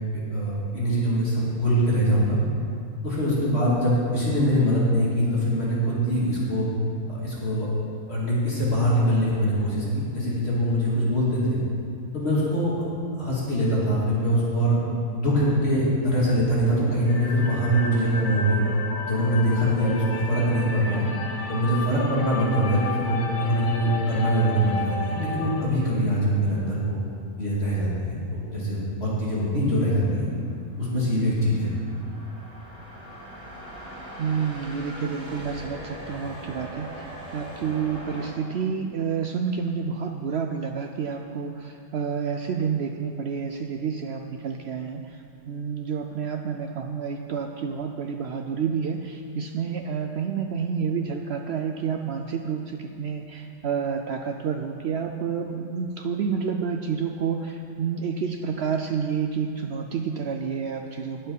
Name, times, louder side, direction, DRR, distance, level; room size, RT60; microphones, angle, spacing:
voice 1, 0.1-2.4 3.0-6.7 7.1-7.7 8.1-11.6 12.1-12.7 13.2-14.8 15.1-18.6 19.0-21.1 21.5-26.9 27.4-30.3 30.8-31.7, equal, 45° left, -7 dB, 2.6 m, -23 dB
voice 2, 3.5-3.8 34.2-61.3, right 6 dB, 70° right, 4 dB, 0.6 m, -29 dB
sound 1, 17.0-25.6, left 4 dB, 65° left, 1.3 m, -33 dB
sound 2, 30.3-38.3, equal, 50° right, 3.3 m, -41 dB
10.0 x 8.8 x 5.3 m, 2.5 s
omnidirectional pair, 1.6 m